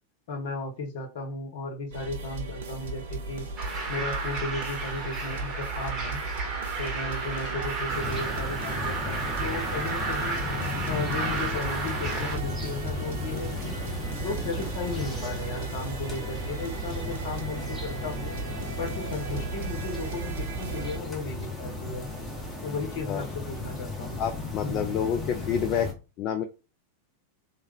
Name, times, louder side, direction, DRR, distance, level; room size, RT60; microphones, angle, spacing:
voice 1, 0.3-3.5 3.9-6.2 6.8-10.4 10.9-13.8 14.2-18.4 18.8-22.1 22.6-24.2 24.6-25.0, left 3 dB, 55° left, 3 dB, 1.0 m, -35 dB
sound 1, 1.9-21.0, right 4 dB, 60° right, 0.6 m, -36 dB
sound 2, 3.6-12.4, right 3 dB, 25° right, 0.9 m, -33 dB
sound 3, 7.9-25.9, left 3 dB, 5° left, 1.1 m, -36 dB
voice 2, 24.2-25.9 26.2-26.4, left 8 dB, 35° left, 7 dB, 0.3 m, -28 dB
3.2 x 2.2 x 3.4 m, 0.31 s
figure-of-eight pair, 90°, 0 cm